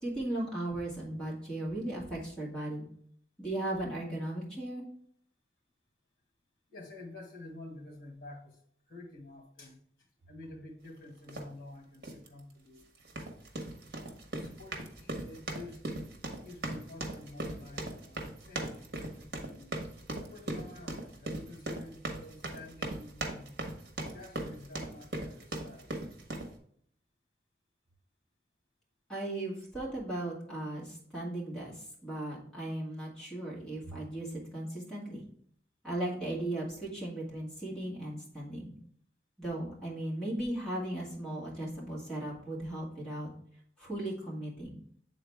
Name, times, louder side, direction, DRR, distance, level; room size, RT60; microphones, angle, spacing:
voice 1, 0.0-2.9 3.4-4.9 29.1-35.2 35.8-38.8 39.4-43.3 43.8-44.7, right 1 dB, 5° left, -5 dB, 2.0 m, -37 dB
voice 2, 6.7-12.8 14.3-15.8 16.4-19.9 20.2-23.6 24.0-25.9, left 2 dB, 55° left, 1 dB, 2.0 m, -50 dB
sound 1, 11.3-11.5 12.0-12.3 13.0-26.5, right 2 dB, 60° right, 1.2 m, -39 dB
8.4 x 4.0 x 3.5 m, 0.63 s
head